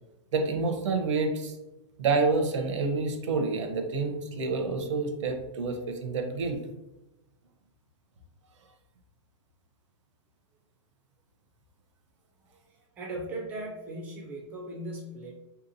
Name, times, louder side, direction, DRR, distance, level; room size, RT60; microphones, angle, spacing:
voice 1, 0.3-1.5 2.0-6.6, right 4 dB, 85° right, 4 dB, 0.7 m, -28 dB
voice 2, 12.5-15.3, right 1 dB, 10° right, 0 dB, 0.3 m, -38 dB
3.3 x 2.8 x 2.6 m, 1.0 s
supercardioid pair, 175°, 15 cm